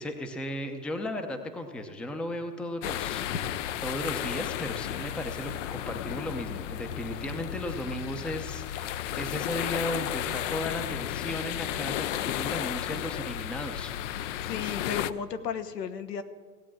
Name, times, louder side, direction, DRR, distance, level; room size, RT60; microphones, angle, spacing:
voice 1, 0.0-3.4 3.8-13.9, left 1 dB, ahead, 6 dB, 0.6 m, -35 dB
sound 1, 2.8-15.1, left 12 dB, 50° left, 0.6 m, -33 dB
voice 2, 14.4-16.2, left 7 dB, 85° left, 9 dB, 1.4 m, -34 dB
16.5 x 8.3 x 7.5 m, 1.5 s
hypercardioid pair, 130°, 47 cm